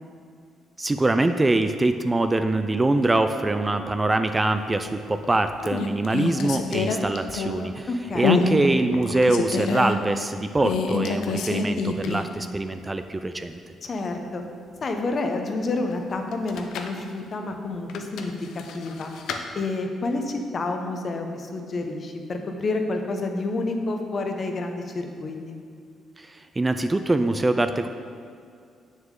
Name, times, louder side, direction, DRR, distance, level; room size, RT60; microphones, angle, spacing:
voice 1, 0.8-7.9 8.1-13.5 26.2-27.9, right 2 dB, 20° right, 9 dB, 0.3 m, -23 dB
sound 1, 4.9-5.3 5.6-7.8 8.2-8.5 8.9-9.9 10.6-12.4 12.7-12.8 16.3-17.0 17.9-19.4, left 5 dB, 80° left, 0.6 m, -26 dB
voice 2, 7.9-8.5 13.8-14.4 14.8-19.1 19.5-25.5, left 2 dB, 45° left, 4 dB, 0.8 m, -29 dB
7.1 x 6.3 x 3.8 m, 2.3 s
cardioid pair, 90°, 0 cm